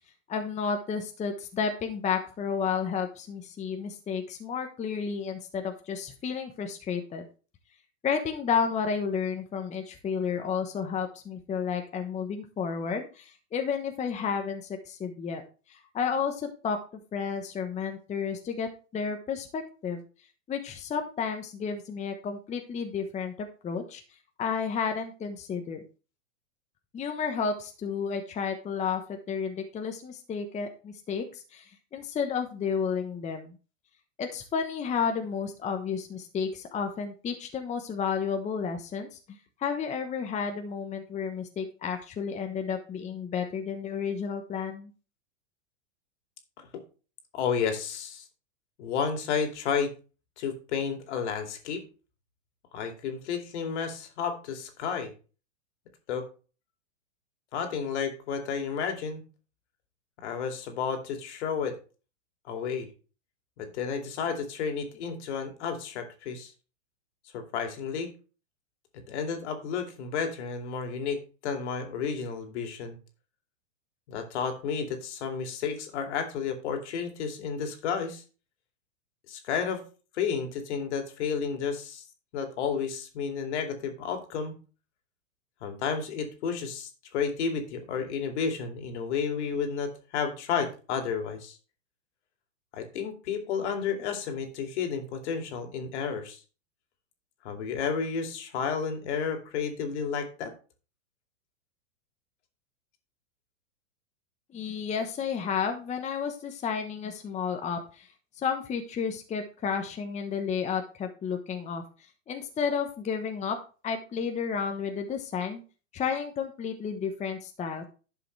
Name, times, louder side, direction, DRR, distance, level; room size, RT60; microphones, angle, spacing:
voice 1, 0.3-7.2 8.0-15.4 15.7-16.8 17.1-20.0 20.5-24.0 24.4-25.8 26.9-33.5 34.2-44.9 104.5-108.1 108.3-111.8 112.3-113.6 113.8-115.6 115.9-117.8, left 6 dB, 20° left, 5 dB, 1.1 m, -32 dB
voice 2, 47.3-48.3 48.8-49.9 50.4-51.8 52.7-55.1 56.1-56.3 57.5-59.2 60.2-61.8 62.5-62.9 63.6-66.5 67.3-68.1 69.1-73.0 74.1-78.2 79.3-79.8 80.1-82.0 82.3-84.6 85.6-91.6 92.7-96.4 97.4-100.5, left 6 dB, 60° left, 5 dB, 2.7 m, -31 dB
11.5 x 6.9 x 3.3 m, 0.35 s
hypercardioid pair, 120°, 39 cm